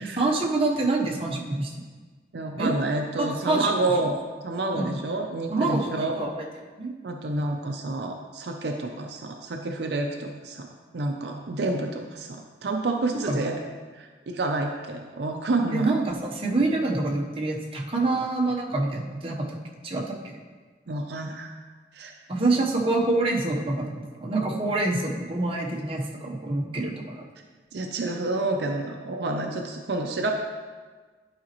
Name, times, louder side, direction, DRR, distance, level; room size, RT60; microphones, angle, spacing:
voice 1, 0.0-1.9 2.5-2.7 3.2-3.7 4.7-5.0 5.5-6.5 6.8-6.9 13.2-13.4 15.7-19.6 19.8-20.4 22.3-27.2, right 2 dB, 30° right, -1 dB, 0.8 m, -26 dB
voice 2, 2.3-4.2 4.4-6.2 7.0-10.7 10.9-13.6 13.9-16.0 20.9-21.6 21.9-22.2 27.7-30.3, right 2 dB, 65° right, 3 dB, 0.5 m, -29 dB
11.0 x 5.0 x 2.9 m, 1.4 s
head